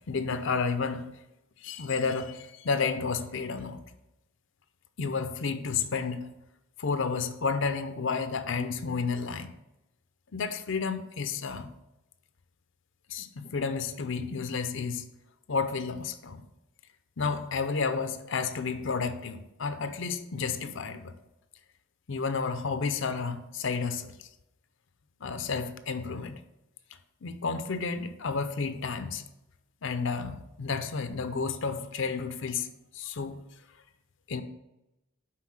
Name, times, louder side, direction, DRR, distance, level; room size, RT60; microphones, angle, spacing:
voice 1, 0.1-1.0 1.6-3.8 5.0-6.3 6.8-9.5 10.3-11.7 13.1-15.0 15.5-16.4 17.2-21.1 22.1-24.1 25.2-26.4 27.2-29.2 29.8-32.7 32.9-33.4 34.3-34.4, left 5 dB, 60° left, 0.6 m, -31 dB
5.7 x 4.5 x 6.1 m
head